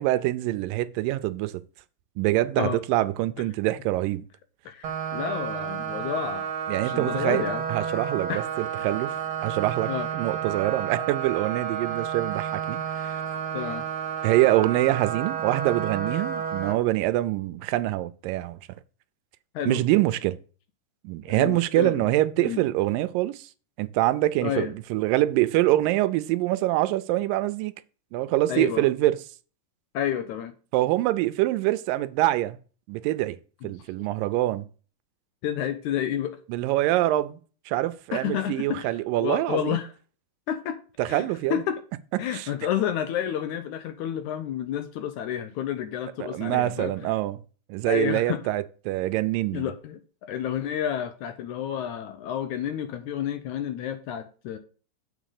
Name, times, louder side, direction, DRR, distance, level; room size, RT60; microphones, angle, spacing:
voice 1, 0.0-1.5 2.2-4.3 6.7-7.4 7.7-9.1 9.4-13.2 14.2-18.6 19.7-20.4 21.0-23.5 23.8-27.7 28.1-29.2 30.7-32.6 32.9-33.4 33.6-34.7 36.5-37.4 37.7-39.8 41.0-41.6 42.3-42.5 46.2-47.4 47.7-49.7, right 16 dB, 80° right, 2.2 m, -25 dB
voice 2, 4.7-6.5 6.8-7.6 8.3-8.5 9.9-10.1 13.5-13.8 19.5-19.8 21.3-22.0 22.4-22.6 24.4-24.7 28.5-28.9 29.9-30.5 33.6-33.8 35.4-36.4 38.1-39.9 40.5-40.8 41.1-41.8 42.2-47.1 47.9-48.4 49.5-54.6, left 10 dB, 75° left, 1.9 m, -30 dB
sound 1, 4.8-16.7, right 8 dB, 50° right, 1.8 m, -31 dB
7.6 x 5.0 x 6.5 m
omnidirectional pair, 4.0 m